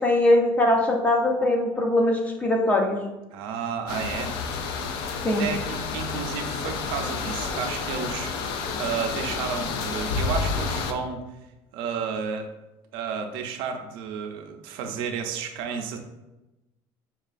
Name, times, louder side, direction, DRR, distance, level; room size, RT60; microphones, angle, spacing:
voice 1, 0.0-3.0 5.2-5.4, left 1 dB, 15° left, 1 dB, 0.5 m, -21 dB
voice 2, 3.3-4.4 5.4-11.2 11.7-12.5 12.9-16.0, right 6 dB, 70° right, 5 dB, 0.5 m, -32 dB
sound 1, 3.9-10.9, left 5 dB, 65° left, 0.4 m, -30 dB
5.3 x 2.3 x 2.4 m, 1.0 s
cardioid pair, 155°, 9 cm